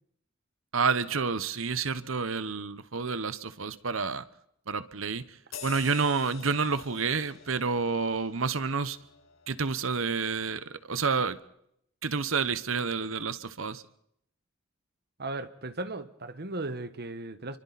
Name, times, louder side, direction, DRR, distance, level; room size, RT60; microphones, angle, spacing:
voice 1, 0.7-4.2 4.7-5.4 5.6-9.0 9.5-11.4 12.0-13.8, right 5 dB, 85° right, 1.1 m, -29 dB
sound 1, 5.5-10.5 10.9-11.1, left 7 dB, 85° left, 6.2 m, -48 dB
voice 2, 15.2-17.6, right 2 dB, 50° right, 1.5 m, -36 dB
30.0 x 24.5 x 4.3 m
head